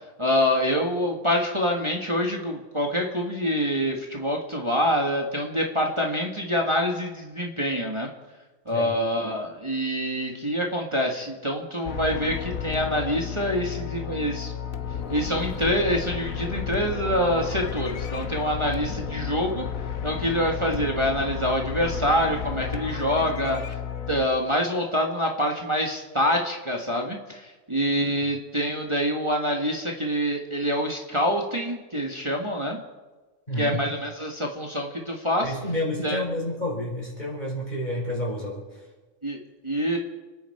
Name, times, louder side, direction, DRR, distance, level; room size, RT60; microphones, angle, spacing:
voice 1, 0.2-8.1 8.6-14.5 15.1-19.7 20.0-23.6 24.1-32.8 33.6-35.5 36.0-36.2 39.2-39.4 39.6-40.0, equal, 20° right, 0 dB, 1.6 m, -26 dB
sound 1, 11.8-24.3, left 8 dB, 85° left, 1.4 m, -32 dB
voice 2, 33.5-33.8 35.4-38.8, left 1 dB, 35° left, -4 dB, 5.2 m, -30 dB
29.5 x 10.0 x 4.4 m, 1.3 s
omnidirectional pair, 1.4 m